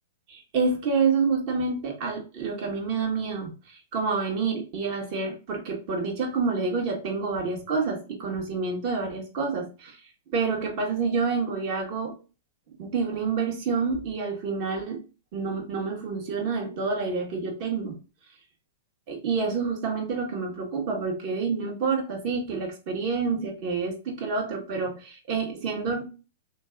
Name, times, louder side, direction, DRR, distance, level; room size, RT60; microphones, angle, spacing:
voice 1, 0.3-10.0 10.3-12.2 12.8-15.0 15.3-18.0 19.1-26.0, right 4 dB, 50° right, 0 dB, 1.7 m, -28 dB
3.4 x 3.2 x 3.7 m, 0.32 s
hypercardioid pair, 125°, 0 cm